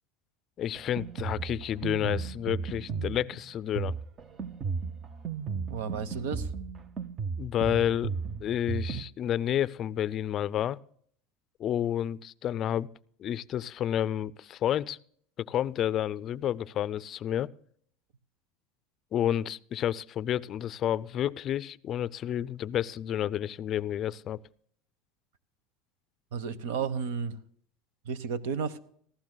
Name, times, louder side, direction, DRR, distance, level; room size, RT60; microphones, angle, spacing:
voice 1, 0.6-3.9 7.4-8.1 8.4-10.8 11.6-12.9 13.2-15.0 15.4-17.5 19.1-24.4, left 10 dB, 40° left, 18 dB, 0.4 m, -30 dB
Drum kit, 0.8-9.0, right 5 dB, 30° right, 0.7 m, -35 dB
voice 2, 5.7-6.5 26.3-27.3 28.1-28.8, right 6 dB, 80° right, 16 dB, 1.0 m, -32 dB
18.5 x 14.5 x 2.2 m, 0.62 s
supercardioid pair, 135°, 0 cm